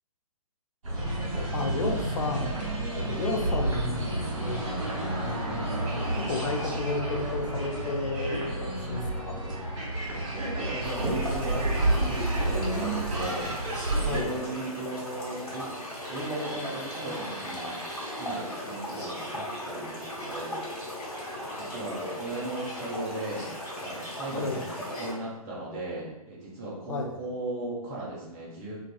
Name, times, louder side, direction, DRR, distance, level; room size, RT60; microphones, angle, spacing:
sound 1, 0.8-14.2, right 1 dB, 60° right, 1.1 m, -30 dB
voice 1, 1.5-2.5 2.9-4.7 5.2-9.4 14.1-14.3 24.3-24.6 26.9-27.2, left 3 dB, 60° left, 2 dB, 0.5 m, -32 dB
voice 2, 10.3-13.5 14.0-15.8 16.1-20.8 21.5-23.5 23.8-28.8, right 2 dB, 20° right, -5 dB, 0.4 m, -37 dB
sound 2, 10.8-25.1, equal, 85° left, 1.1 m, -38 dB
sound 3, 15.5-25.2, equal, 20° left, 1.1 m, -45 dB
2.3 x 2.3 x 2.2 m, 0.93 s
figure-of-eight pair, 130°, 19 cm